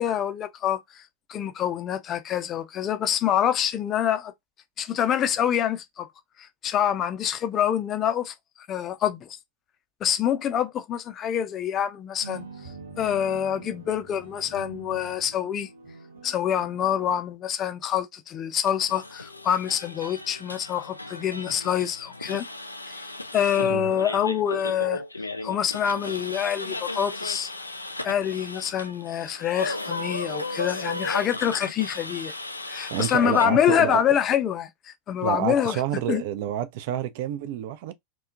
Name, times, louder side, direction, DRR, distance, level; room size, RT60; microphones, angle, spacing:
voice 1, 0.0-4.3 4.8-6.1 6.4-9.4 10.0-12.7 13.0-15.7 16.2-22.5 22.9-23.0 23.3-25.0 25.4-27.5 28.0-32.3 32.7-35.8 36.1-36.2, left 9 dB, 30° left, 0.5 m, -26 dB
sound 1, 12.2-17.2, right 3 dB, 75° right, 0.9 m, -44 dB
sound 2, 18.7-33.5, left 2 dB, 85° left, 0.3 m, -35 dB
voice 2, 32.9-34.2 35.2-37.9, right 11 dB, 50° right, 0.4 m, -29 dB
2.8 x 2.3 x 2.4 m
figure-of-eight pair, 90°, 0 cm